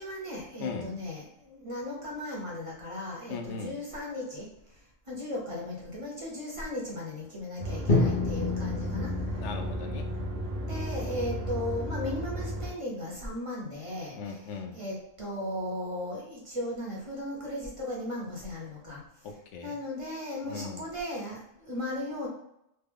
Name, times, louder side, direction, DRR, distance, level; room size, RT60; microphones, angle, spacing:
voice 1, 0.0-4.5 5.1-9.1 10.6-14.4 14.7-19.0 19.6-22.3, left 1 dB, 30° right, -3 dB, 0.8 m, -36 dB
voice 2, 0.6-0.9 3.3-3.8 9.4-10.1 14.1-14.8 19.2-19.8 20.4-20.8, left 5 dB, 90° left, 4 dB, 0.9 m, -38 dB
sound 1, 7.6-12.7, equal, 65° right, 0.9 m, -34 dB
Drum, 7.9-11.9, left 3 dB, 50° left, 0.8 m, -31 dB
3.2 x 2.2 x 3.5 m, 0.79 s
omnidirectional pair, 1.2 m